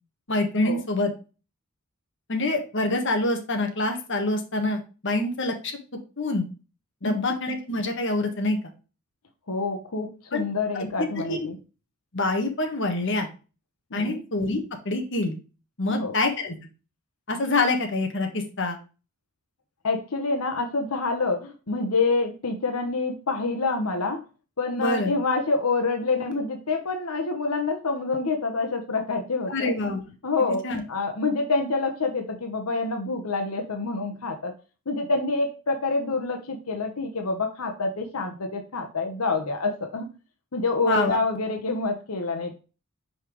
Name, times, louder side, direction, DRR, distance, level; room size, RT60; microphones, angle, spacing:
voice 1, 0.3-1.1 2.3-5.7 6.2-6.5 7.0-8.6 10.3-10.4 10.7-10.9 11.3-11.5 12.1-13.3 13.9-14.6 14.8-15.3 15.8-16.5 17.3-18.8 24.8-25.1 29.5-30.0 30.6-30.8 40.9-41.2, left 2 dB, 55° left, 3 dB, 1.4 m, -26 dB
voice 2, 9.5-11.6 13.9-14.2 15.9-16.1 19.8-24.2 24.6-29.7 30.2-34.5 34.9-40.1 40.5-42.6, left 3 dB, 85° left, 4 dB, 1.1 m, -27 dB
5.7 x 5.3 x 3.1 m, 0.32 s
head